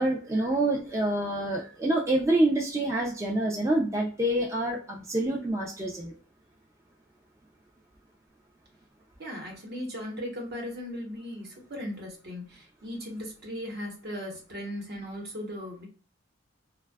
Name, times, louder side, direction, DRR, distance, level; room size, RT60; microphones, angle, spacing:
voice 1, 0.0-6.1, right 1 dB, 15° right, -2 dB, 0.3 m, -27 dB
voice 2, 9.2-15.9, equal, 55° right, 0 dB, 0.9 m, -37 dB
2.5 x 2.2 x 2.2 m, 0.39 s
head